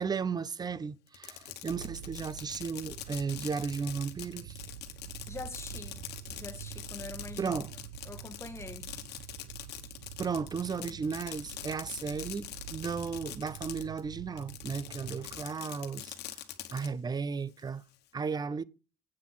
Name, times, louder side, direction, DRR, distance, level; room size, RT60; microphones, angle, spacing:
voice 1, 0.0-4.6 7.4-7.7 10.2-16.1 16.7-17.8 18.1-18.6, right 5 dB, 25° right, 0.6 m, -35 dB
Fireworks, 1.1-14.0 14.4-16.9, left 13 dB, 75° left, 1.3 m, -44 dB
sound 1, 1.7-15.4, right 11 dB, 85° right, 0.8 m, -47 dB
voice 2, 5.3-6.0 6.4-7.6 8.0-9.0, left 4 dB, 15° left, 1.8 m, -44 dB
sound 2, 5.4-6.6 8.3-8.8, right 5 dB, 70° right, 2.8 m, -51 dB
8.7 x 5.8 x 7.5 m
cardioid pair, 110°, 17 cm